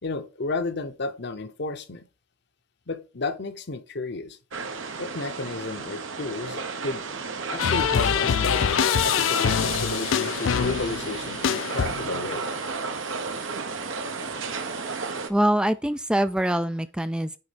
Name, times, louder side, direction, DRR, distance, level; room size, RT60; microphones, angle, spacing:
voice 1, 0.0-2.0 2.9-4.4 5.0-8.7 9.0-12.4, left 3 dB, 60° left, 0.9 m, -32 dB
sound 1, 4.5-15.3, right 4 dB, 80° right, 1.2 m, -33 dB
sound 2, 7.6-12.3, left 8 dB, 75° left, 0.4 m, -24 dB
voice 2, 15.3-17.4, right 1 dB, 5° right, 0.3 m, -24 dB
9.6 x 3.9 x 5.1 m
head